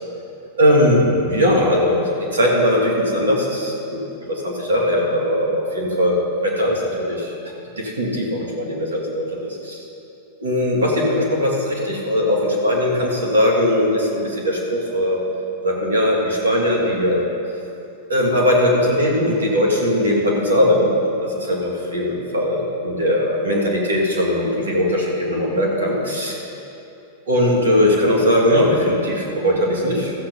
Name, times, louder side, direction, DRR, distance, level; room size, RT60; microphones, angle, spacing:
voice 1, 0.6-2.0 2.3-4.0 4.3-6.2 6.4-7.3 7.8-9.8 10.4-15.2 15.6-17.2 18.1-26.4 27.3-30.1, left 1 dB, 90° right, -2 dB, 2.6 m, -19 dB
14.5 x 7.9 x 5.5 m, 2.8 s
hypercardioid pair, 105°, 0 cm